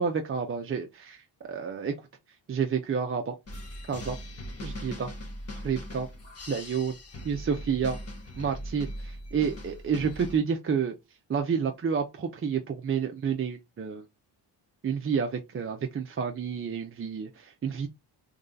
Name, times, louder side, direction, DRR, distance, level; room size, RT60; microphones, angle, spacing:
voice 1, 0.0-1.9 2.5-3.3 3.9-4.2 4.6-5.1 5.6-6.1 6.5-6.9 7.3-8.0 8.4-10.9 11.3-14.0 14.8-17.9, right 6 dB, 30° right, 0.4 m, -29 dB
sound 1, 3.5-10.4, equal, 30° left, 1.1 m, -40 dB
3.2 x 2.7 x 3.7 m
cardioid pair, 110°, 50 cm